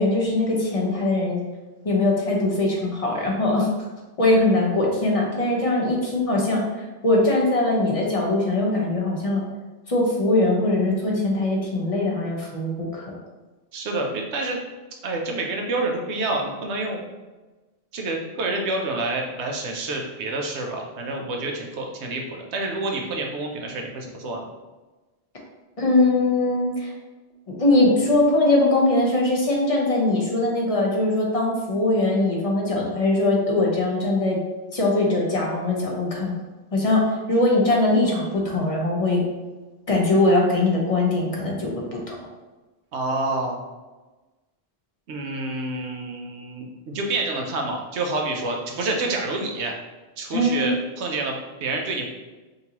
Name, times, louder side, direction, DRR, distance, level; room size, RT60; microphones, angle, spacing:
voice 1, 0.0-1.4 1.8-3.7 4.2-9.4 9.9-13.1 25.8-26.9 27.5-34.4 34.7-36.3 36.7-37.0 37.3-39.2 39.9-42.2 50.3-50.7, left 2 dB, 35° left, -2 dB, 0.9 m, -21 dB
voice 2, 13.7-14.6 15.0-17.0 17.9-24.5 42.9-43.6 45.1-49.7 50.2-52.1, right 2 dB, 90° right, 1 dB, 1.0 m, -28 dB
5.2 x 2.7 x 2.9 m, 1.2 s
omnidirectional pair, 1.1 m